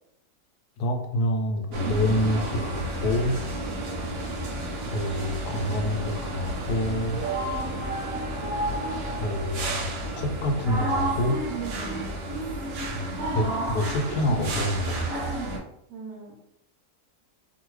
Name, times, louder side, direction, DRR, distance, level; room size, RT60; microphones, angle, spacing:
voice 1, 0.8-3.4 4.9-7.2 9.2-9.9 10.2-11.4 12.9-13.1 13.3-15.4, left 1 dB, 90° left, 3 dB, 1.2 m, -27 dB
sound 1, 1.7-15.6, right 1 dB, 65° right, 1.0 m, -31 dB
voice 2, 11.7-12.1 15.9-16.4, right 2 dB, 90° right, -4 dB, 1.3 m, -41 dB
2.7 x 2.7 x 3.0 m, 0.74 s
omnidirectional pair, 1.7 m